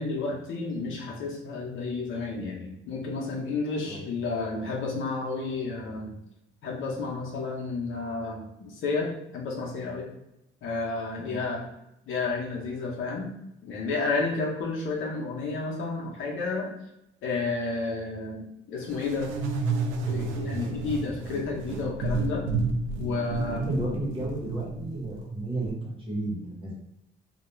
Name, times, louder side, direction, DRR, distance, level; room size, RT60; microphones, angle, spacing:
voice 1, 0.0-6.1 6.6-10.1 10.6-11.7 12.1-13.3 13.6-16.7 17.2-19.3 20.1-22.4 23.0-23.7, left 3 dB, 80° left, -1 dB, 0.7 m, -31 dB
sound 1, 18.9-25.7, right 3 dB, 90° right, 0.4 m, -31 dB
voice 2, 23.4-26.7, right 2 dB, 25° right, -3 dB, 1.0 m, -32 dB
2.3 x 2.2 x 3.0 m, 0.84 s
cardioid pair, 90°, 20 cm